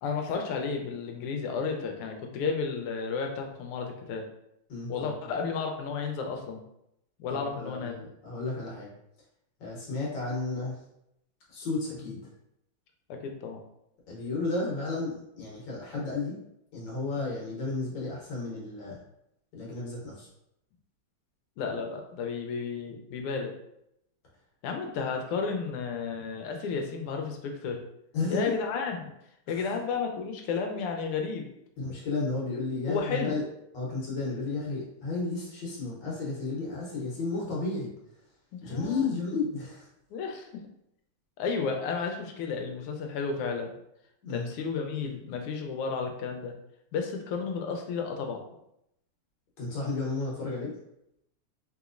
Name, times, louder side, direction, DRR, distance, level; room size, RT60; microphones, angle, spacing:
voice 1, 0.0-4.2 4.9-6.6 7.2-8.0 12.0-12.1 13.1-13.6 17.2-17.3 21.6-23.5 24.6-27.8 28.3-29.1 29.5-31.5 32.9-33.4 38.5-39.0 40.1-40.5 41.4-43.7 44.3-46.5 46.9-48.4, left 5 dB, 85° left, 3 dB, 1.5 m, -32 dB
voice 2, 4.7-5.4 7.3-8.9 9.6-10.8 11.5-12.2 14.1-16.4 16.7-19.0 19.5-20.3 28.1-28.5 29.5-29.8 31.8-33.4 33.7-37.9 38.6-39.9 44.2-44.5 49.6-50.7, left 3 dB, 60° left, -4 dB, 1.5 m, -33 dB
3.6 x 2.9 x 2.4 m, 0.79 s
omnidirectional pair, 2.4 m